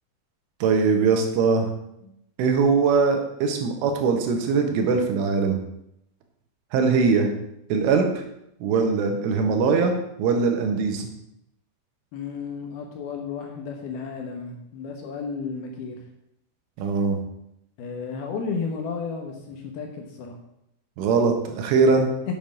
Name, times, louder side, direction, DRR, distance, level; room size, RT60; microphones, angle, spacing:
voice 1, 0.6-1.7 2.4-5.6 6.7-7.3 7.7-8.2 8.6-11.1 16.8-17.2 21.0-22.1, right 4 dB, 90° right, 4 dB, 3.9 m, -21 dB
voice 2, 12.1-16.0 17.8-20.4, left 5 dB, 70° left, 2 dB, 2.6 m, -33 dB
8.7 x 7.5 x 6.3 m, 0.79 s
omnidirectional pair, 5.5 m